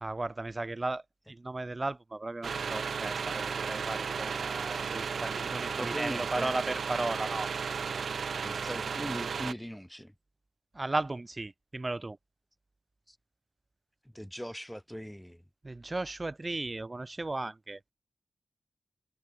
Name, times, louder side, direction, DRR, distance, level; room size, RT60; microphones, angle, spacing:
voice 1, 0.0-7.5 10.7-12.2 15.6-17.9, right 2 dB, 30° right, 2.7 m, -35 dB
sound 1, 2.4-9.5, right 6 dB, 75° right, 2.0 m, -34 dB
voice 2, 5.8-6.6 8.4-10.1 13.1-13.2 14.1-15.4, equal, 5° left, 4.8 m, -40 dB
cardioid pair, 50°, 0 cm